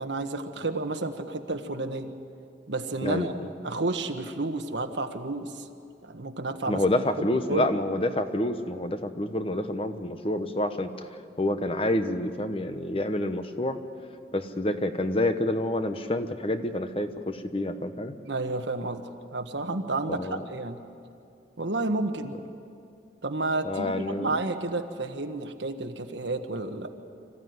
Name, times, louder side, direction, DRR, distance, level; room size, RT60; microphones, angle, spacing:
voice 1, 0.0-2.1 2.7-3.3 3.6-5.7 6.0-6.8 7.2-7.7 18.2-19.0 19.3-20.8 21.6-22.3 23.2-26.9, right 2 dB, 90° right, 6 dB, 1.5 m, -31 dB
voice 2, 3.0-3.5 6.7-11.1 11.4-13.8 14.3-18.1 20.1-20.4 23.6-24.3, left 1 dB, 30° left, 8 dB, 1.1 m, -28 dB
26.0 x 15.0 x 9.5 m, 2.5 s
head